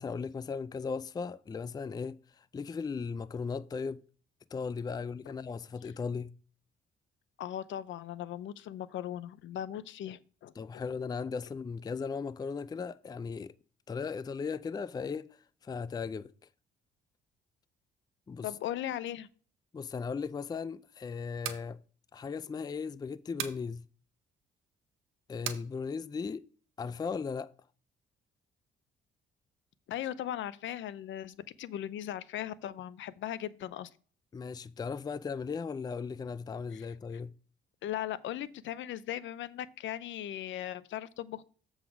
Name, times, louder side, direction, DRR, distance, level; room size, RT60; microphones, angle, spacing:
voice 1, 0.0-4.0 4.5-6.3 10.6-13.5 13.9-15.3 15.6-16.3 18.3-18.5 19.7-21.8 22.1-23.8 25.3-26.4 26.8-27.5 34.3-37.3, left 5 dB, 20° left, 0.4 m, -37 dB
voice 2, 7.4-10.8 18.4-19.3 29.9-33.9 36.7-36.9 37.8-41.4, left 11 dB, 70° left, 0.6 m, -38 dB
sound 1, 21.2-21.7 23.4-23.6 25.4-25.7, right 10 dB, 80° right, 0.9 m, -37 dB
7.6 x 4.0 x 5.8 m
cardioid pair, 90°, 20 cm